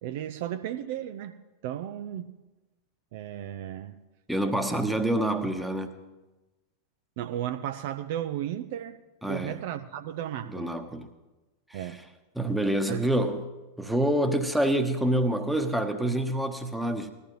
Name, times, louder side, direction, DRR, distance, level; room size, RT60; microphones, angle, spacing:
voice 1, 0.0-2.3 3.1-4.0 4.7-4.8 7.2-9.0 9.3-10.8 11.7-12.0 12.9-13.1, right 11 dB, 50° right, 0.6 m, -34 dB
voice 2, 4.3-5.9 9.2-9.6 10.4-11.1 11.7-11.9 12.3-13.4 13.8-17.1, right 1 dB, ahead, 1.2 m, -27 dB
19.5 x 14.0 x 3.2 m
figure-of-eight pair, 90°, 0 cm